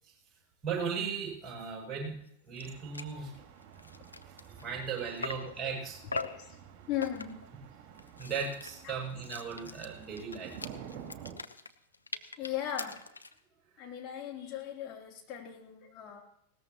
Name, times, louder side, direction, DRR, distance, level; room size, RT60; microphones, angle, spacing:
voice 1, 0.6-2.1 2.4-3.3 4.3-6.0 8.2-10.5 13.8-13.9, right 6 dB, 20° right, -2 dB, 7.5 m, -37 dB
sound 1, 2.3-2.4 2.6-2.7 2.9-3.2 3.6-5.6 6.1-6.5 7.0-7.5 7.9-13.4, left 3 dB, 80° left, 0.7 m, -42 dB
sound 2, 2.6-11.4, right 8 dB, 40° right, 2.9 m, -50 dB
voice 2, 5.2-5.5 6.1-6.6 6.9-7.4 8.8-8.9 12.4-13.0 13.8-16.2, left 10 dB, 35° left, 0 dB, 3.2 m, -38 dB
20.0 x 18.0 x 3.0 m, 0.74 s
figure-of-eight pair, 90°, 0 cm